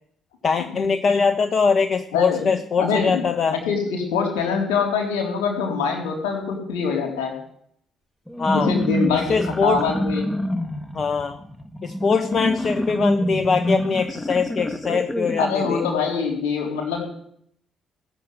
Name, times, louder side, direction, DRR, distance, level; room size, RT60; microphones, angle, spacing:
voice 1, 0.4-3.6 8.4-8.7 9.1-9.8 10.9-11.4 11.8-15.8, left 5 dB, 45° left, 8 dB, 1.3 m, -22 dB
voice 2, 2.1-2.5 2.8-3.2 3.5-7.4 8.5-10.3 15.4-17.1, left 5 dB, 75° left, 1 dB, 4.1 m, -24 dB
sound 1, 8.3-16.1, equal, 10° left, 2.2 m, -27 dB
18.5 x 7.8 x 9.8 m, 0.69 s
figure-of-eight pair, 40°, 0 cm